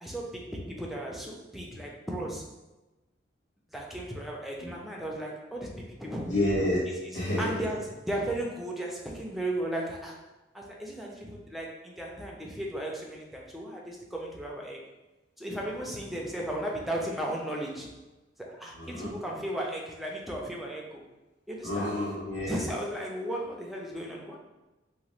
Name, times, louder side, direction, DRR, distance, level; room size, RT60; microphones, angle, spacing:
voice 1, 0.0-2.6 3.7-6.3 7.1-7.8 8.1-10.3 10.5-14.8 15.4-18.0 18.4-21.0 21.5-22.0 22.5-24.4, right 1 dB, ahead, -2 dB, 0.4 m, -35 dB
voice 2, 6.2-6.8 7.1-7.6 18.8-19.1 21.6-22.6, left 1 dB, 75° left, -9 dB, 1.2 m, -29 dB
2.9 x 2.2 x 3.1 m, 1.1 s
head